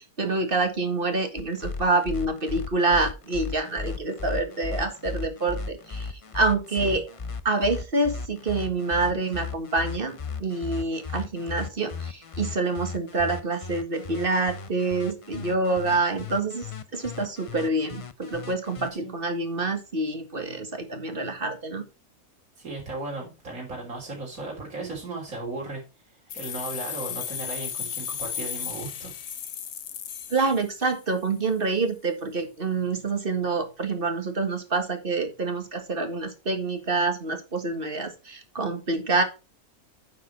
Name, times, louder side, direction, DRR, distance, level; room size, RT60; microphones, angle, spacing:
voice 1, 0.0-7.0 7.5-16.7 16.9-21.9 30.3-39.2, right 3 dB, 40° right, 6 dB, 1.9 m, -27 dB
sound 1, 1.4-18.9, left 5 dB, 40° left, 0.5 m, -36 dB
voice 2, 22.6-25.8 26.3-29.1, right 2 dB, 70° right, -2 dB, 4.0 m, -36 dB
sound 2, 26.3-31.1, left 8 dB, 70° left, 1.3 m, -35 dB
9.5 x 6.7 x 4.5 m, 0.30 s
omnidirectional pair, 1.5 m